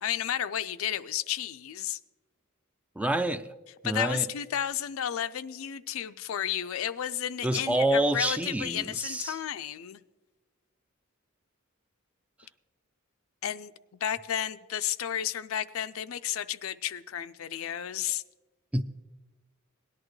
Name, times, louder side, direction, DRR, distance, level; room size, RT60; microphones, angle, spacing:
voice 1, 0.0-2.0 3.8-10.0 13.4-13.7 14.0-18.2, left 10 dB, 70° left, 0.4 m, -32 dB
voice 2, 3.0-3.5 3.8-4.3 7.4-9.4 18.7-18.8, right 1 dB, 5° right, 0.3 m, -27 dB
18.0 x 11.0 x 3.1 m
head